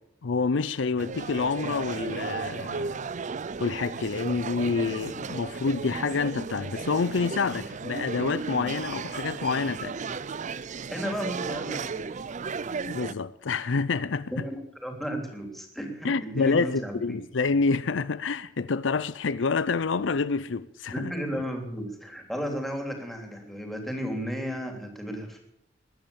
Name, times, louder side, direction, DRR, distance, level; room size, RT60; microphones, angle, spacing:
voice 1, 0.2-3.1 3.6-10.0 12.9-14.4 16.0-21.1, left 4 dB, 75° left, 0.6 m, -28 dB
sound 1, 1.0-13.1, right 5 dB, 40° right, 0.5 m, -35 dB
voice 2, 10.9-12.1 14.3-17.2 20.9-25.4, equal, ahead, 3.2 m, -34 dB
21.5 x 9.0 x 7.1 m
head